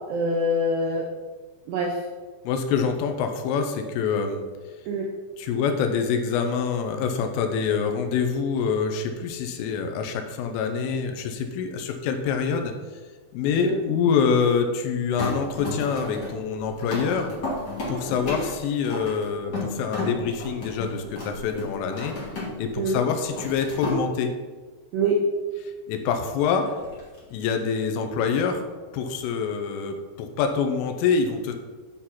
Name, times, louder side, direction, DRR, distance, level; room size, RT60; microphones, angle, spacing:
voice 1, 0.1-1.1 1.7-2.0 4.9-5.1 13.6-13.8 22.8-23.0 24.9-25.2, right 1 dB, 80° right, -1 dB, 2.4 m, -24 dB
voice 2, 2.4-4.5 5.4-12.7 13.3-17.3 17.9-22.2 22.6-24.3 25.6-26.7 27.3-28.7 28.9-31.5, left 6 dB, 80° left, 6 dB, 3.2 m, -26 dB
sound 1, 15.2-22.7 23.0-24.0 26.7-27.4, left 2 dB, 60° left, 1.0 m, -33 dB
9.5 x 4.5 x 5.7 m, 1.4 s
omnidirectional pair, 5.9 m